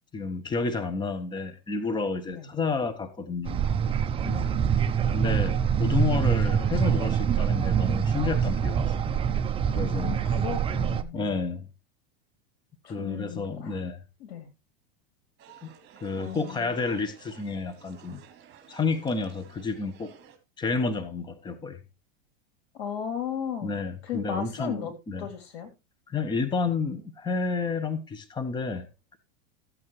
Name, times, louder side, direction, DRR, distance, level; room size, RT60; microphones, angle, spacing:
voice 1, 0.1-3.6 5.1-8.8 9.7-10.2 11.1-11.7 12.9-14.0 15.6-15.7 16.0-18.2 18.7-20.1 20.6-21.8 23.6-25.3 26.1-29.2, left 4 dB, 15° left, 1.1 m, -30 dB
sound 1, 3.5-11.0, right 7 dB, 20° right, 0.6 m, -25 dB
voice 2, 4.2-4.5 10.0-11.4 12.8-13.8 14.2-14.5 16.2-16.8 22.7-23.7 24.0-24.9 25.2-25.7, left 8 dB, 90° left, 3.4 m, -35 dB
sound 2, 15.4-20.4, right 8 dB, 35° right, 3.1 m, -53 dB
14.0 x 8.6 x 3.2 m
supercardioid pair, 130°, 31 cm